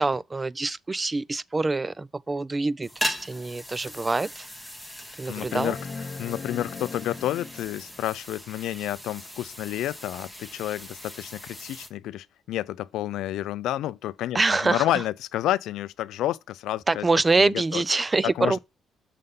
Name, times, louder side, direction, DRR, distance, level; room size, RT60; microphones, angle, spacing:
voice 1, 0.0-4.5 5.2-5.7 14.3-14.8 16.9-18.6, right 3 dB, 25° right, 0.4 m, -25 dB
sound 1, 2.8-11.9, equal, 5° right, 1.3 m, -38 dB
voice 2, 5.3-5.8 6.2-17.1 17.4-17.8 18.2-18.6, left 13 dB, 85° left, 0.3 m, -30 dB
sound 2, 5.5-8.0 9.7-9.8, left 5 dB, 40° left, 0.7 m, -38 dB
6.5 x 3.7 x 5.4 m
cardioid pair, 90°, 0 cm